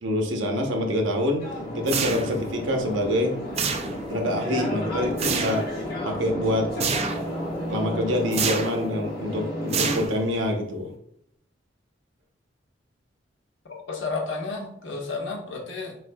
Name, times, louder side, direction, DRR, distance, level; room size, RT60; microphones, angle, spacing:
voice 1, 0.0-1.4 1.7-3.4 4.1-5.7 6.0-6.7 7.7-10.9, left 1 dB, 90° right, 3 dB, 0.8 m, -26 dB
sound 1, 1.4-10.1, left 1 dB, 55° left, 1.3 m, -32 dB
sound 2, 1.9-2.5 3.6-4.2 5.2-5.7 6.8-7.3 8.3-8.9 9.7-10.4, right 6 dB, 35° right, 0.4 m, -28 dB
voice 2, 13.9-15.9, left 3 dB, 80° left, -1 dB, 1.1 m, -31 dB
4.4 x 4.2 x 2.3 m, 0.75 s
head